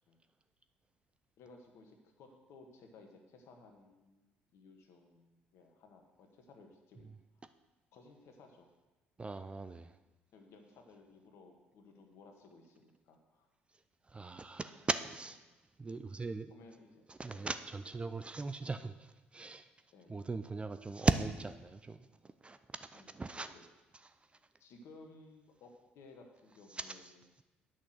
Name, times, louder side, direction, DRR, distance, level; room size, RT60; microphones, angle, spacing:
voice 1, 1.4-7.1 7.9-8.7 10.3-13.5 16.5-17.5 19.9-20.2 22.9-23.1 23.4-23.6 24.6-27.2, left 3 dB, 60° left, 1.6 m, -58 dB
voice 2, 9.2-10.0 14.1-15.4 15.8-16.5 17.1-19.7 20.1-23.5 24.0-24.1 26.7-27.1, right 3 dB, 20° right, 0.5 m, -38 dB
8.3 x 6.1 x 6.4 m
hypercardioid pair, 55°, 5 cm